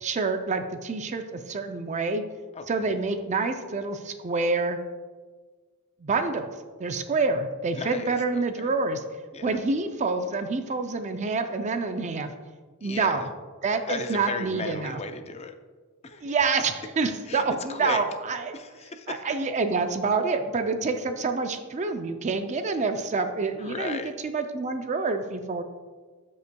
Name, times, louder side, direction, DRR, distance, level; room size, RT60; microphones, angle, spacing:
voice 1, 0.0-2.2 2.7-4.8 6.0-6.5 6.8-9.0 9.4-12.3 12.8-13.3 13.6-15.0 16.2-18.5 19.1-25.6, right 4 dB, 35° right, 7 dB, 0.4 m, -27 dB
voice 2, 7.7-8.7 9.3-9.6 12.8-13.3 13.9-15.5 16.0-16.4 17.3-18.0 18.5-19.2 23.6-24.1, left 4 dB, 30° left, 7 dB, 0.5 m, -36 dB
13.0 x 5.4 x 2.2 m, 1.4 s
head